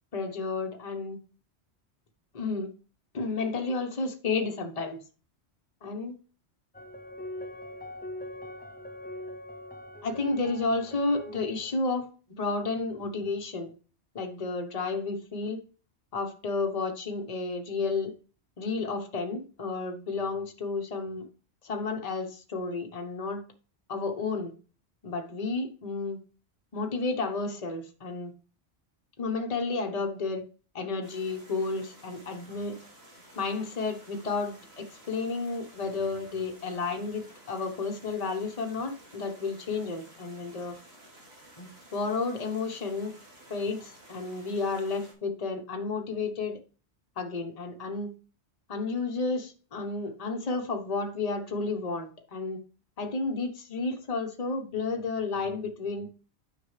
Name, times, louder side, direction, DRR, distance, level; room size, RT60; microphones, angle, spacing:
voice 1, 0.1-1.2 2.3-2.7 3.1-5.0 5.8-6.1 10.0-12.0 12.4-13.7 14.1-15.6 16.1-18.1 18.6-21.3 21.6-23.4 23.9-24.5 25.0-26.2 26.7-28.3 29.2-30.4 30.7-32.8 33.4-40.8 41.6-43.2 43.5-46.6 47.2-48.1 48.7-52.6 53.0-56.1, left 3 dB, 35° left, 3 dB, 1.0 m, -32 dB
sound 1, 6.7-11.8, left 1 dB, 15° left, 0.3 m, -42 dB
sound 2, 31.0-45.1, right 1 dB, 70° right, 2.6 m, -53 dB
9.6 x 5.8 x 3.2 m, 0.37 s
omnidirectional pair, 1.1 m